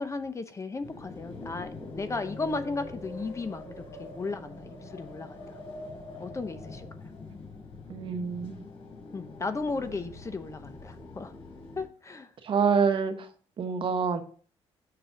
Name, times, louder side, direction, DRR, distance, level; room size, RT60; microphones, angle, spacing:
voice 1, 0.0-3.7 4.0-5.4 6.2-6.9 9.1-11.3 11.8-12.3, left 3 dB, 25° left, 10 dB, 0.8 m, -35 dB
sound 1, 0.8-11.9, left 2 dB, 70° left, 4.0 m, -44 dB
voice 2, 7.9-8.6 12.4-13.3 13.6-14.2, right 6 dB, 55° right, 8 dB, 1.0 m, -26 dB
6.7 x 3.9 x 5.7 m, 0.43 s
supercardioid pair, 75°, 11 cm